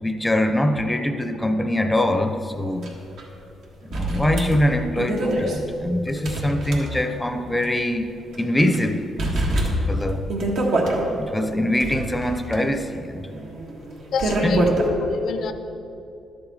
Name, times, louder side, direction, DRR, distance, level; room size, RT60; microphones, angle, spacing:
voice 1, 0.0-2.9 3.8-8.1 8.4-8.9 9.2-10.3 11.1-13.4 14.4-14.8, left 1 dB, 10° left, 0.6 m, -23 dB
sound 1, 2.8-2.9 3.2-3.3 3.9-7.3 7.6-7.7 8.3-8.8 9.2-11.0 11.6-14.9, right 1 dB, 75° right, 1.4 m, -25 dB
voice 2, 14.1-15.5, left 5 dB, 70° left, 0.5 m, -27 dB
11.5 x 6.9 x 4.1 m
cardioid pair, 90°, 0 cm